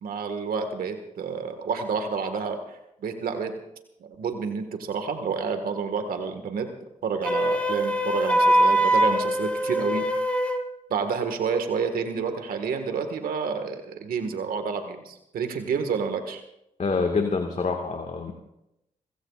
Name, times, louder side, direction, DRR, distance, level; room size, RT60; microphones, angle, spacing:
voice 1, 0.0-3.5 4.0-6.7 7.0-10.1 10.9-16.4, right 5 dB, 80° right, 7 dB, 1.7 m, -29 dB
Wind instrument woodwind instrument, 7.2-10.6, right 1 dB, 10° left, 2.3 m, -22 dB
voice 2, 16.8-18.3, left 4 dB, 55° left, 4 dB, 1.8 m, -26 dB
28.5 x 15.5 x 2.5 m, 0.85 s
supercardioid pair, 45°, 15 cm